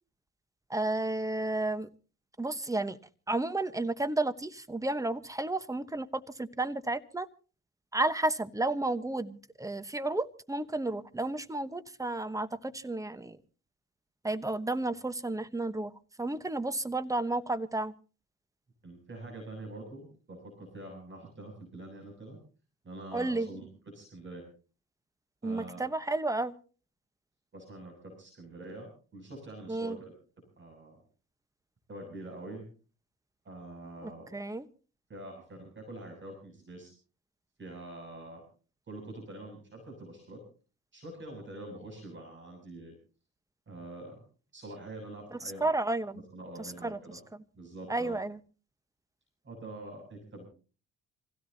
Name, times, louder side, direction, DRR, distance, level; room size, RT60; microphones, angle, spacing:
voice 1, 0.7-1.9 2.4-3.0 3.3-7.3 7.9-13.4 14.2-15.9 16.2-17.9 23.1-23.5 25.4-26.5 29.7-30.0 34.0-34.7 45.3-46.2 46.6-47.0 47.9-48.4, right 2 dB, 10° right, 13 dB, 1.1 m, -32 dB
voice 2, 18.8-22.4 22.8-24.4 25.4-25.9 27.5-30.1 30.6-31.0 31.9-32.7 33.4-34.4 35.1-36.9 37.6-38.4 38.9-40.4 40.9-42.9 43.7-44.2 44.5-45.7 46.1-47.2 47.6-48.2 49.4-50.5, right 2 dB, 40° right, 1 dB, 7.3 m, -45 dB
27.0 x 16.5 x 2.8 m, 0.37 s
cardioid pair, 90°, 30 cm